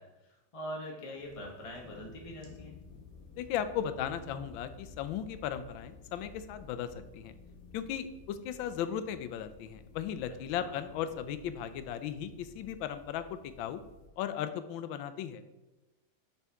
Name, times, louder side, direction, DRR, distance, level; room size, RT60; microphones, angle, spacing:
voice 1, 0.0-2.7 10.6-10.7, equal, 25° left, -1 dB, 0.8 m, -43 dB
sound 1, 1.2-14.1, left 4 dB, 55° left, 1.4 m, -54 dB
voice 2, 3.4-7.3 7.7-13.8 14.2-15.4, left 9 dB, 90° left, 11 dB, 1.3 m, -36 dB
6.8 x 5.6 x 3.5 m, 1.1 s
omnidirectional pair, 2.1 m